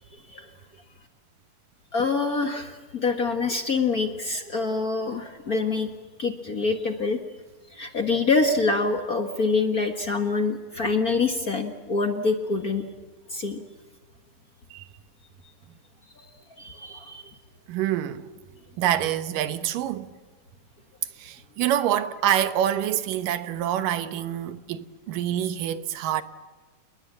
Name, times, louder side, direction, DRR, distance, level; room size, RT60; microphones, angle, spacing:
voice 1, 1.9-5.9 6.2-7.2 7.7-12.8 13.3-13.6 16.1-16.2 16.6-17.3, left 4 dB, 40° left, 1.3 m, -25 dB
voice 2, 17.7-18.3 18.8-20.1 21.2-26.2, right 11 dB, 85° right, 2.8 m, -26 dB
29.5 x 20.5 x 7.5 m
omnidirectional pair, 3.8 m